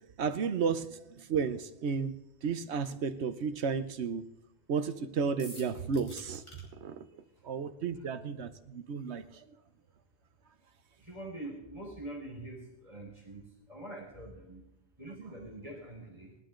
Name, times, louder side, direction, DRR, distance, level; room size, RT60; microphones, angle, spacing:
voice 1, 0.2-2.1 2.4-4.3 4.7-6.4 6.8-7.1 7.4-9.4, right 5 dB, 75° right, 11 dB, 1.1 m, -33 dB
sound 1, 5.4-6.6, equal, 25° left, 3.6 m, -48 dB
voice 2, 6.7-7.5 7.9-8.1 11.0-14.7 15.0-16.4, right 1 dB, 30° right, -1 dB, 3.9 m, -45 dB
20.0 x 12.0 x 3.8 m, 0.86 s
omnidirectional pair, 1.2 m